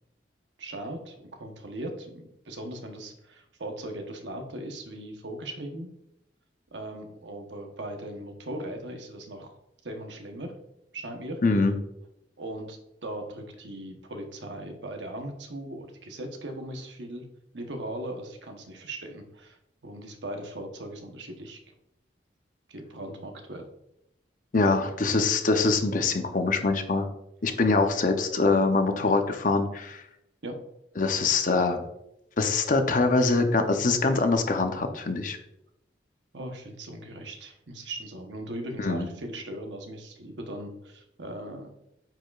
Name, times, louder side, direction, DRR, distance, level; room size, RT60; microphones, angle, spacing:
voice 1, 0.6-5.9 6.7-9.5 9.8-10.6 10.9-11.4 12.4-17.3 17.5-19.6 19.8-21.6 22.7-23.7 30.4-30.6 36.3-41.7, right 1 dB, 85° right, 4 dB, 1.0 m, -39 dB
voice 2, 11.4-11.7 24.5-27.1 27.4-30.0 31.0-31.8 32.4-35.4 38.8-39.1, left 3 dB, 45° left, 6 dB, 0.7 m, -24 dB
9.0 x 4.9 x 2.4 m, 0.81 s
head